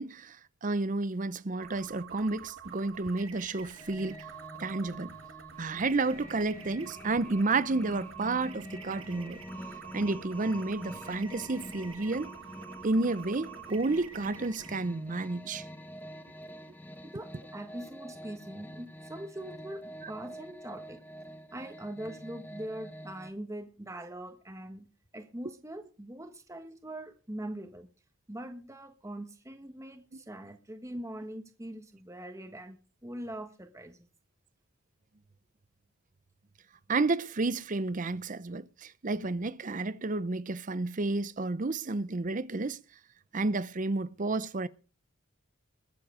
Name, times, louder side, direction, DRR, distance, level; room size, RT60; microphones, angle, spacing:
voice 1, 0.0-4.3 4.6-5.2 5.6-9.4 9.9-12.3 12.8-15.6 36.9-42.8 43.3-44.7, right 3 dB, 40° right, 0.7 m, -31 dB
sound 1, 1.6-14.8, right 7 dB, 80° right, 1.6 m, -48 dB
sound 2, 3.8-23.3, equal, 10° left, 1.1 m, -46 dB
voice 2, 17.0-21.0 21.5-24.9 25.1-27.9 28.3-34.1, right 1 dB, 15° right, 1.3 m, -42 dB
21.5 x 7.7 x 4.9 m
head